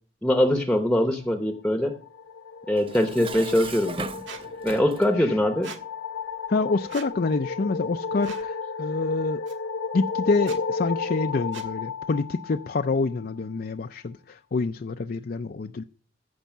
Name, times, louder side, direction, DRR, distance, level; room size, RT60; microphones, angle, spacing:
voice 1, 0.2-2.0 2.7-4.1 4.6-5.7, left 1 dB, 5° left, 0.9 m, -22 dB
sound 1, 1.8-13.2, left 5 dB, 65° left, 1.0 m, -34 dB
Dishes pots and pans, 2.8-5.2, right 4 dB, 30° right, 0.6 m, -38 dB
Squeak, 4.3-4.4 5.6-5.8 6.9-7.1 8.2-8.5 9.5-9.6 10.4-10.6 11.5-11.7, right 6 dB, 70° right, 1.6 m, -41 dB
voice 2, 6.5-9.4 9.9-15.8, left 3 dB, 50° left, 0.5 m, -27 dB
14.5 x 5.6 x 7.3 m
head